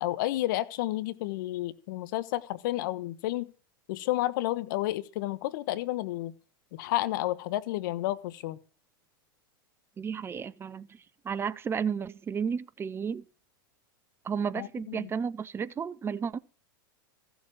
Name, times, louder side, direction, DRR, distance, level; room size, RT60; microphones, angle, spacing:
voice 1, 0.0-3.5 3.9-6.3 6.7-8.6 14.6-15.1, left 16 dB, 60° left, 1.2 m, -31 dB
voice 2, 10.0-10.9 11.2-13.2 14.2-16.4, right 6 dB, 20° right, 0.7 m, -32 dB
15.0 x 7.3 x 7.4 m
hypercardioid pair, 115°, 12 cm